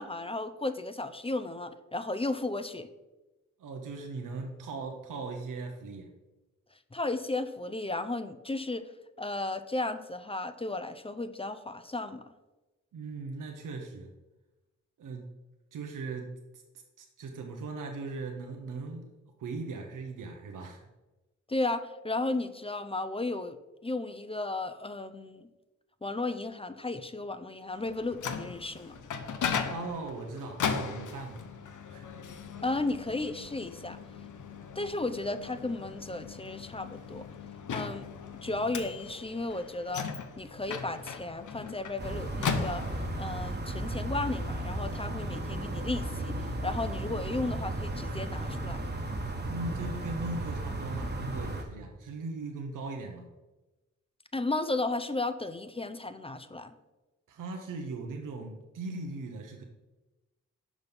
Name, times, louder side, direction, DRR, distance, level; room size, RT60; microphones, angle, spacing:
voice 1, 0.0-2.9 6.9-8.9 9.2-12.3 21.5-23.6 23.8-25.5 26.0-28.9 32.6-34.0 34.8-37.3 37.7-38.1 38.4-40.1 40.4-42.8 43.2-46.4 46.6-48.8 54.3-56.7, left 2 dB, 20° left, 10 dB, 0.6 m, -34 dB
voice 2, 3.6-6.1 12.9-14.1 15.0-15.3 15.7-16.6 17.0-19.1 19.4-20.9 29.7-31.5 31.9-32.1 49.5-53.3 57.3-59.6, right 3 dB, 80° right, 3 dB, 0.9 m, -39 dB
Microwave oven, 27.8-43.3, left 6 dB, 75° left, 0.8 m, -38 dB
sound 1, 42.0-51.6, right 1 dB, 35° right, 1.3 m, -35 dB
6.2 x 5.2 x 5.4 m, 1.1 s
cardioid pair, 45°, 31 cm